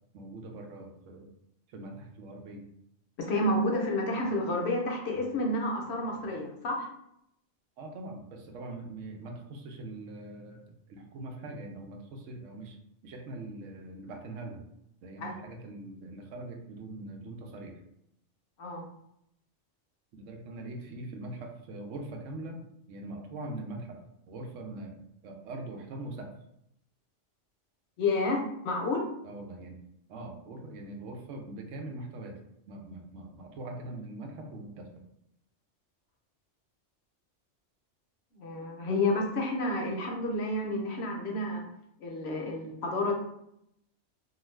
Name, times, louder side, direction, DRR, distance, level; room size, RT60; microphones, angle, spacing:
voice 1, 0.1-1.3 1.7-2.6 7.8-10.6 10.9-12.8 13.0-14.7 15.0-17.8 20.1-26.3 29.2-29.8 30.1-32.4 32.7-35.1, right 2 dB, 85° right, 3 dB, 0.9 m, -42 dB
voice 2, 3.2-6.9 15.2-15.3 18.6-18.9 28.0-29.1 38.3-41.6 42.0-43.1, left 2 dB, 65° left, 1 dB, 0.8 m, -30 dB
2.4 x 2.4 x 3.1 m, 0.78 s
omnidirectional pair, 1.3 m